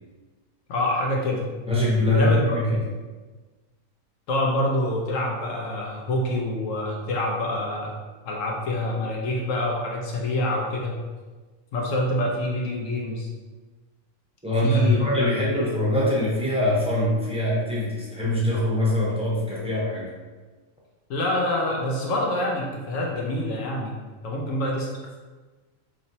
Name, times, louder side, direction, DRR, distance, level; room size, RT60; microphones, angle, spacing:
voice 1, 0.7-1.5 2.1-2.8 4.3-7.9 8.2-11.0 11.7-13.3 14.6-15.1 15.6-15.7 16.0-16.2 21.1-24.0 24.2-25.2, left 1 dB, 75° left, -1 dB, 1.0 m, -26 dB
voice 2, 1.7-2.8 14.4-20.1, left 1 dB, 5° right, -7 dB, 0.6 m, -23 dB
4.1 x 3.0 x 2.7 m, 1.3 s
omnidirectional pair, 1.4 m